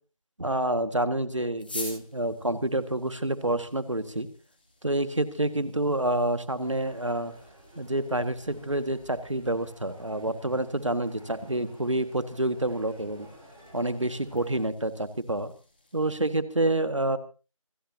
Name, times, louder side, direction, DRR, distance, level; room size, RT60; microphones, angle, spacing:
voice 1, 0.4-4.3 4.8-7.3 7.8-13.3 13.7-15.5 15.9-17.2, right 1 dB, 60° right, 12 dB, 1.9 m, -28 dB
sound 1, 1.6-16.3, left 2 dB, 15° left, 2.9 m, -49 dB
sound 2, 6.5-14.6, equal, 5° right, 1.6 m, -53 dB
26.5 x 15.0 x 2.9 m, 0.33 s
figure-of-eight pair, 175°, 17 cm